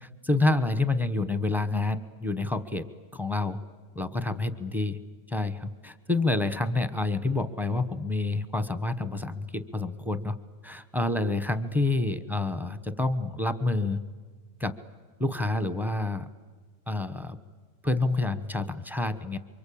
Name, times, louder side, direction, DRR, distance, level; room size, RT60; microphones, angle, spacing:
voice 1, 0.0-2.9 3.1-3.6 3.9-5.0 5.3-10.3 10.6-14.0 14.6-14.7 15.2-16.3 16.9-17.4 17.8-19.4, left 2 dB, ahead, 11 dB, 0.7 m, -28 dB
28.0 x 24.5 x 8.6 m, 1.5 s
omnidirectional pair, 1.8 m